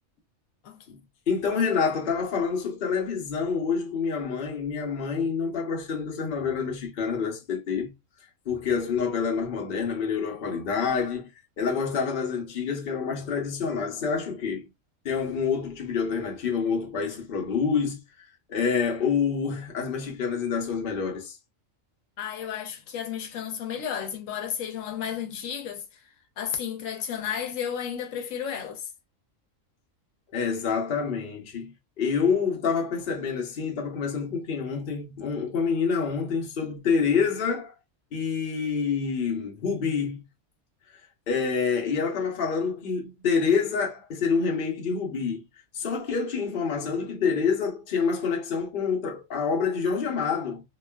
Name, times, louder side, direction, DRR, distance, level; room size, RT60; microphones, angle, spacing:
voice 1, 1.3-7.9 8.5-11.3 11.6-14.7 15.0-18.0 18.5-21.4 30.3-37.7 38.1-40.2 41.3-45.4 45.7-50.6, left 5 dB, 50° left, 0.9 m, -27 dB
voice 2, 22.2-25.8 26.4-28.9, left 8 dB, 85° left, 1.0 m, -32 dB
3.0 x 2.3 x 2.2 m
omnidirectional pair, 1.3 m